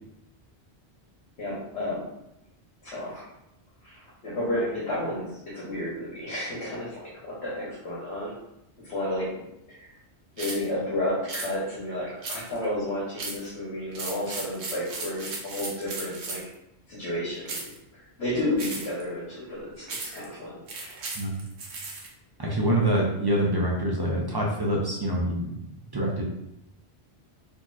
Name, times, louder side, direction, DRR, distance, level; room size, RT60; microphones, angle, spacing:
voice 1, 1.4-2.0 2.8-3.2 3.8-8.3 8.8-9.3 9.7-9.8 10.4-16.4 16.9-21.1, left 1 dB, 75° left, -8 dB, 1.2 m, -32 dB
sound 1, 10.4-10.7 11.3-11.5 12.2-12.7 13.2-13.5 13.9-16.5 17.5-17.8 18.6-19.0 19.9-20.3 20.7-22.1, right 3 dB, 80° right, 1.0 m, -36 dB
voice 2, 22.4-25.6 25.9-26.2, right 1 dB, 30° right, -2 dB, 0.5 m, -25 dB
4.1 x 2.9 x 2.4 m, 0.83 s
omnidirectional pair, 1.1 m